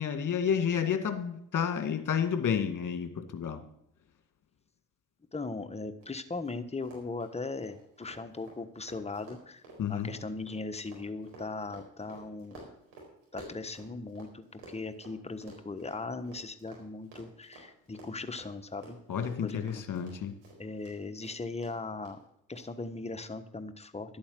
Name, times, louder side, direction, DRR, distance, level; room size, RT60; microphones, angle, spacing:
voice 1, 0.0-3.6 9.8-10.1 19.1-20.3, left 7 dB, 45° left, 7 dB, 2.1 m, -30 dB
voice 2, 5.3-9.6 9.9-12.6 13.3-19.0 19.4-19.9 20.6-22.2 22.5-24.2, left 3 dB, 15° left, 8 dB, 1.3 m, -39 dB
Run, 6.0-6.1 6.4-6.5 6.8-14.3 14.6-20.9 21.2-21.7 22.1-22.2 22.6-22.7, right 3 dB, 75° right, 4.5 m, -51 dB
11.5 x 8.7 x 7.6 m, 0.73 s
hypercardioid pair, 40°, 43 cm